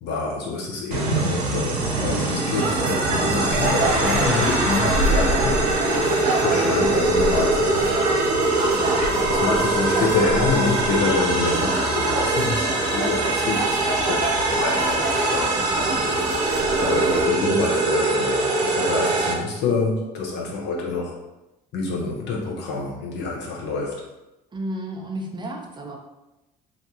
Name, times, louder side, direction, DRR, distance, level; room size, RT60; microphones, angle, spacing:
voice 1, 0.0-5.6 6.4-8.1 9.3-16.0 16.8-21.2 21.7-23.9, left 3 dB, 60° left, -2 dB, 0.8 m, -27 dB
sound 1, 0.9-19.3, right 2 dB, 90° right, 0.4 m, -23 dB
sound 2, 2.5-17.3, right 2 dB, 50° right, 0.9 m, -26 dB
Gong, 3.5-13.1, equal, 10° left, 1.0 m, -34 dB
voice 2, 8.7-9.6 24.5-26.0, right 1 dB, 25° right, 1 dB, 0.6 m, -33 dB
2.6 x 2.3 x 2.8 m, 0.97 s
hypercardioid pair, 60°, 20 cm